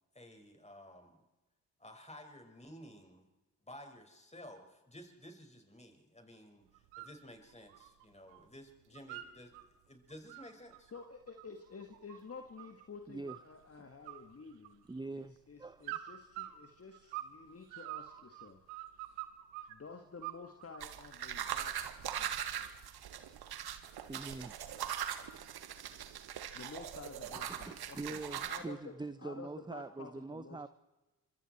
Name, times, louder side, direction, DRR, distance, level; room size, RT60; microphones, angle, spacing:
voice 1, 0.1-1.2 1.8-3.3 3.6-10.9, equal, 15° left, 4 dB, 5.7 m, -54 dB
sound 1, 6.7-7.2 7.5-8.4 8.7-9.6 10.1-12.8 13.3-13.7 14.0-15.0 15.8-17.4 17.7-19.7 20.2-20.9, right 15 dB, 75° right, 1.6 m, -46 dB
voice 2, 10.9-14.8 15.1-18.7 19.7-21.9 22.2-22.6 26.5-30.7, left 4 dB, 30° left, 5 dB, 2.1 m, -51 dB
voice 3, 14.9-16.0 24.1-25.0 27.4-30.7, right 3 dB, 10° right, 13 dB, 0.9 m, -44 dB
sound 2, 20.8-28.6, right 9 dB, 60° right, 1.9 m, -41 dB
25.5 x 25.0 x 4.5 m, 1.1 s
hypercardioid pair, 40°, 44 cm